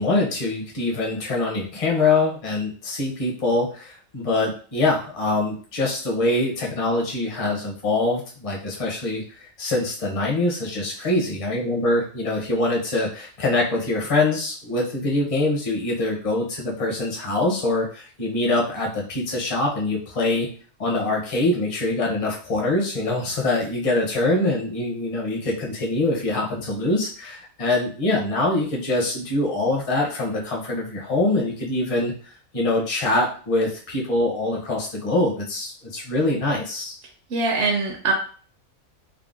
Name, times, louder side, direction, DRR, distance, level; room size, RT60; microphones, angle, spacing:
voice 1, 0.0-9.2 9.6-20.5 20.8-32.1 32.5-37.0, left 2 dB, 35° left, -2 dB, 0.6 m, -24 dB
voice 2, 37.3-38.1, right 4 dB, 65° right, 0 dB, 0.7 m, -22 dB
3.6 x 2.0 x 2.4 m, 0.42 s
omnidirectional pair, 1.5 m